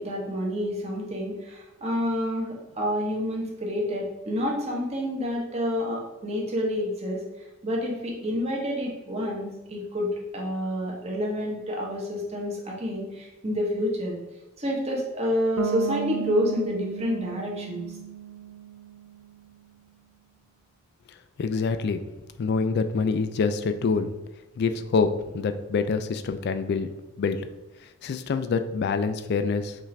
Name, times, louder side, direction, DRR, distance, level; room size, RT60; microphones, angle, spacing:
voice 1, 0.0-7.2 7.6-14.2 14.6-17.8, equal, 30° right, -2 dB, 0.9 m, -28 dB
Bass guitar, 15.6-19.4, right 8 dB, 90° right, 0.5 m, -34 dB
voice 2, 21.4-22.0 22.4-24.1 24.6-26.9 27.2-27.5 28.0-29.8, left 4 dB, 50° left, 9 dB, 0.3 m, -26 dB
5.5 x 2.5 x 3.2 m, 0.99 s
head